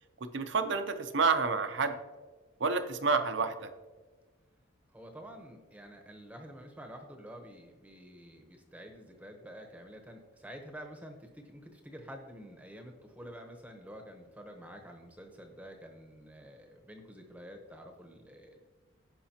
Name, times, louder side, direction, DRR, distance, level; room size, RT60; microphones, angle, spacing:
voice 1, 0.2-2.0 2.6-3.7, right 4 dB, 60° right, 9 dB, 0.7 m, -29 dB
voice 2, 4.9-18.6, equal, 5° right, 3 dB, 0.9 m, -49 dB
16.0 x 5.4 x 2.9 m, 1.4 s
head